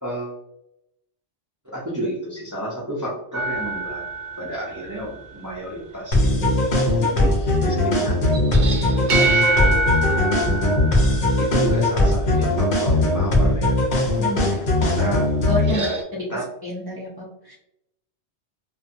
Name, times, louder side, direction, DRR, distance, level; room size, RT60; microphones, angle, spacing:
voice 1, 0.0-0.4 1.6-4.0 4.4-6.7 7.0-9.8 11.4-15.3 15.6-16.0 16.3-16.4, right 1 dB, 25° right, -5 dB, 0.5 m, -32 dB
sound 1, 3.3-5.3 8.3-12.0 15.5-16.0, right 2 dB, 65° right, 0.8 m, -26 dB
sound 2, 6.1-15.7, left 1 dB, 55° left, 0.7 m, -19 dB
voice 2, 14.2-15.1 15.5-16.3 16.6-17.6, equal, 40° left, -5 dB, 0.3 m, -30 dB
2.6 x 2.2 x 2.5 m, 0.82 s
omnidirectional pair, 1.1 m